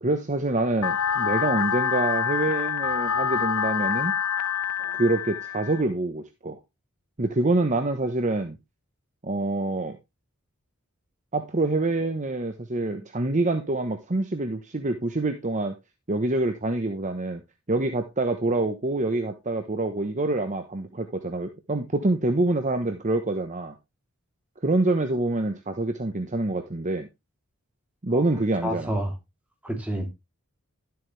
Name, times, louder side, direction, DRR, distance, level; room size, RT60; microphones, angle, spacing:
voice 1, 0.0-4.1 5.0-6.6 7.2-8.6 9.2-10.0 11.3-15.7 16.1-17.4 17.7-23.7 24.6-27.1 28.0-28.9, right 2 dB, 35° right, 1.1 m, -26 dB
sound 1, 0.8-5.8, left 8 dB, 80° left, 0.6 m, -26 dB
voice 2, 28.6-29.1 29.6-30.1, right 1 dB, 5° right, 3.4 m, -29 dB
12.5 x 8.0 x 3.4 m
head